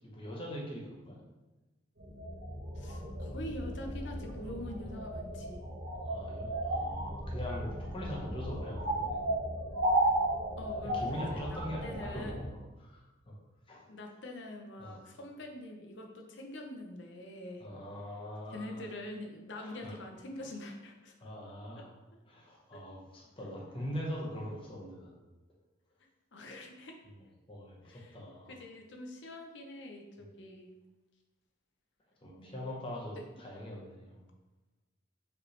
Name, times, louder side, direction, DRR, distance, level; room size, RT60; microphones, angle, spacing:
voice 1, 0.0-1.2 6.0-9.3 10.8-13.4 13.7-13.8 14.8-15.0 17.6-18.8 19.6-20.0 21.2-21.9 22.3-25.2 27.1-28.6 32.2-34.2, equal, 25° left, -3 dB, 1.0 m, -42 dB
sound 1, 2.0-12.4, right 1 dB, 85° right, 1.1 m, -35 dB
voice 2, 2.7-5.6 10.6-12.4 13.9-17.7 18.5-21.1 21.8-21.9 22.7-22.8 26.3-27.0 27.8-28.2 28.5-30.7 32.4-32.6 33.1-33.4, left 1 dB, 65° left, 2 dB, 0.7 m, -45 dB
5.1 x 3.1 x 3.2 m, 1.1 s
head